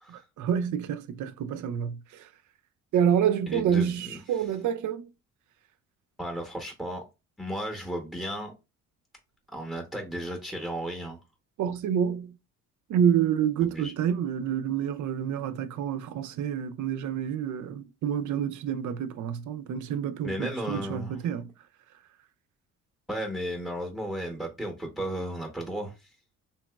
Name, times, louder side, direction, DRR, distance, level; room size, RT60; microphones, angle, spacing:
voice 1, 0.1-2.3 2.9-5.1 11.6-12.4 12.9-21.5, right 8 dB, 55° right, 0.4 m, -28 dB
voice 2, 3.5-4.2 6.2-7.0 7.4-8.5 9.5-11.2 13.6-13.9 20.2-21.2 23.1-26.1, equal, ahead, 0.8 m, -34 dB
2.9 x 2.9 x 2.2 m
supercardioid pair, 60°, 37 cm